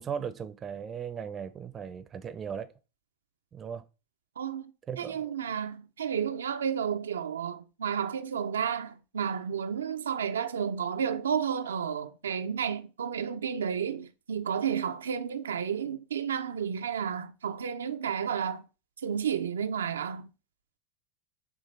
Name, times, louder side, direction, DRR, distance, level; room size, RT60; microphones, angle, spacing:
voice 1, 0.0-2.7 3.5-3.8 4.9-5.3, right 7 dB, 30° right, 0.5 m, -37 dB
voice 2, 4.4-4.7 5.0-18.6 19.0-20.3, right 7 dB, 85° right, 0.4 m, -31 dB
6.6 x 2.4 x 3.2 m
hypercardioid pair, 95°, 0 cm